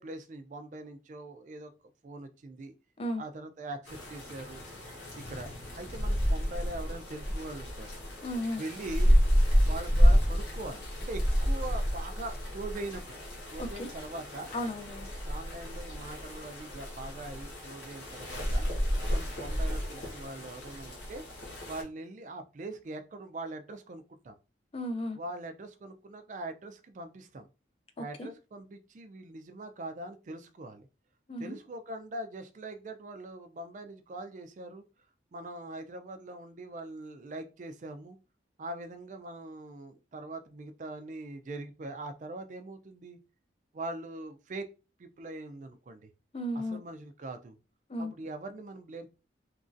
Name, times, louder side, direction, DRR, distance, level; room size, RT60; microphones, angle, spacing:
voice 1, 0.0-1.7 2.0-2.7 3.2-4.6 5.3-5.5 5.8-7.9 8.6-9.2 9.6-13.2 13.5-14.5 15.2-18.6 19.1-21.2 21.7-24.3 25.1-27.5 28.0-30.9 31.4-34.8 35.3-38.2 38.6-43.2 43.7-44.7 45.0-46.1 46.5-47.6 48.0-49.1, right 2 dB, 40° right, 0.3 m, -42 dB
sound 1, 3.8-21.8, equal, 90° left, 1.2 m, -30 dB
voice 2, 8.2-8.6 13.6-13.9 14.5-15.1 24.7-25.2 28.2-28.3 31.3-31.6 46.3-46.8 47.9-48.1, left 1 dB, 30° left, 0.4 m, -34 dB
2.9 x 2.5 x 2.5 m
head